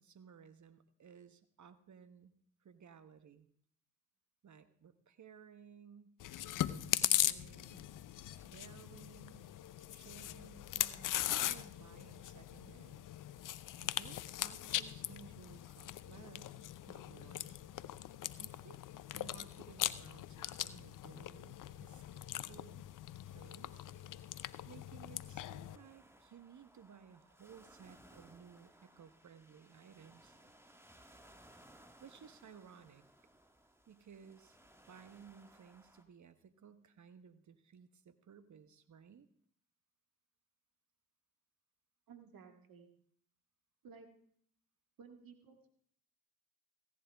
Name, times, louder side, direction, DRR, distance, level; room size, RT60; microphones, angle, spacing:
voice 1, 0.0-2.3 2.6-3.5 4.4-6.2 6.6-7.8 8.4-9.5 9.9-13.0 13.8-16.6 16.9-17.5 18.4-18.8 19.1-22.9 23.3-23.9 24.4-30.3 32.0-33.1 33.9-34.6 34.9-39.3, right 7 dB, 55° right, 12 dB, 1.2 m, -58 dB
Chewing mastication, 6.2-25.8, left 13 dB, 60° left, 0.6 m, -40 dB
sound 1, 25.7-36.0, right 1 dB, 5° right, 1.7 m, -63 dB
voice 2, 42.1-42.9 43.8-44.1 45.0-45.7, right 6 dB, 70° right, 5 dB, 2.0 m, -56 dB
16.0 x 11.0 x 3.5 m, 0.63 s
hypercardioid pair, 40°, 36 cm